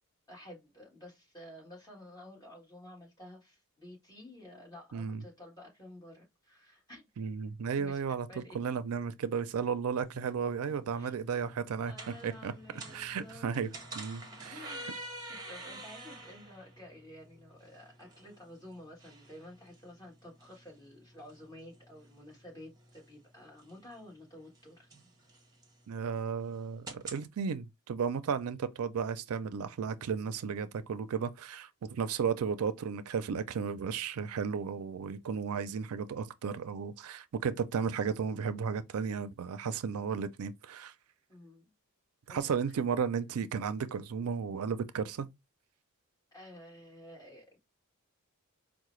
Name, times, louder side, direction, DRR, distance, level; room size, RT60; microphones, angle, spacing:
voice 1, 0.3-7.0 7.8-8.0 8.3-8.6 10.9-11.1 11.9-13.6 14.5-15.0 15.3-24.9 41.3-41.7 42.3-42.4 42.7-42.8 46.3-47.7, left 1 dB, 20° left, 1.5 m, -51 dB
voice 2, 4.9-5.2 7.2-11.9 12.2-12.5 12.9-13.7 14.0-14.6 25.9-40.9 42.3-45.3, right 6 dB, 75° right, 0.4 m, -34 dB
sound 1, 10.0-27.3, right 2 dB, 20° right, 0.9 m, -49 dB
4.7 x 2.1 x 3.0 m
head